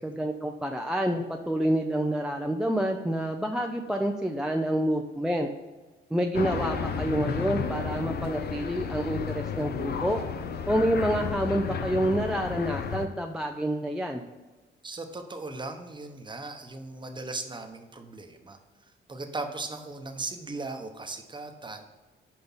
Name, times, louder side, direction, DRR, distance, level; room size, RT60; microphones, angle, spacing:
voice 1, 0.0-5.5 6.1-10.2 10.7-14.2, right 1 dB, 5° right, 2 dB, 0.5 m, -28 dB
sound 1, 6.3-13.1, left 6 dB, 55° left, 0.7 m, -32 dB
voice 2, 14.8-21.8, right 3 dB, 25° right, 5 dB, 1.0 m, -38 dB
6.1 x 5.1 x 5.5 m, 1.2 s
cardioid pair, 90°, 20 cm